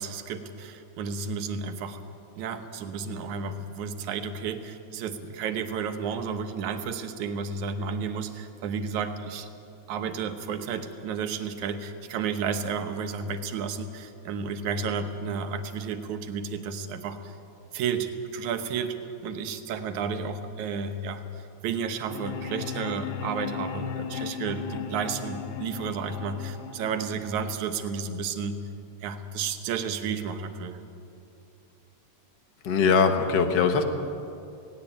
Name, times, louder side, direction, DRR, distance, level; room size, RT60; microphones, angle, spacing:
voice 1, 0.0-2.0 2.4-9.5 9.9-17.4 17.7-19.0 19.2-28.6 29.0-30.8, right 5 dB, 75° right, 8 dB, 2.5 m, -32 dB
sound 1, 22.1-28.1, left 7 dB, 85° left, 2.5 m, -36 dB
voice 2, 32.6-33.8, left 5 dB, 50° left, 7 dB, 1.3 m, -21 dB
18.0 x 17.5 x 8.9 m, 2.7 s
omnidirectional pair, 3.4 m